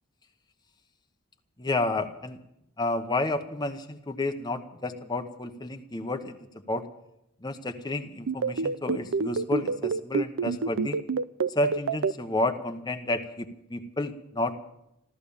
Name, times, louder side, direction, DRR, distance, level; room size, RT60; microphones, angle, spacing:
voice 1, 1.6-2.4 2.8-6.4 6.7-6.8 7.4-11.0 11.5-14.6, left 2 dB, 20° left, 5 dB, 1.1 m, -30 dB
sound 1, 8.3-12.1, right 4 dB, 65° right, 0.5 m, -26 dB
14.5 x 14.0 x 7.1 m, 0.82 s
head